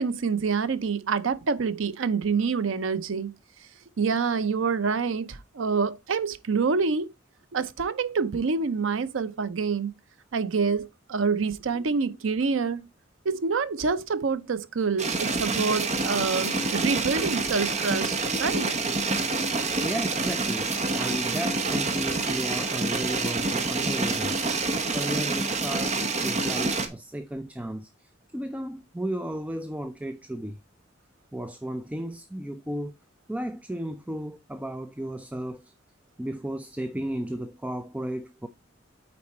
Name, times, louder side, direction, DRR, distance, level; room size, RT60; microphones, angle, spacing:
voice 1, 0.0-3.3 4.0-7.1 7.5-9.9 10.3-12.8 13.3-18.7, right 5 dB, 90° right, 0.6 m, -27 dB
sound 1, 15.0-26.9, right 3 dB, 35° right, 1.0 m, -27 dB
voice 2, 19.8-30.6 31.3-33.0 33.3-35.7 36.2-38.5, right 1 dB, 5° right, 0.4 m, -34 dB
8.5 x 4.3 x 4.2 m
head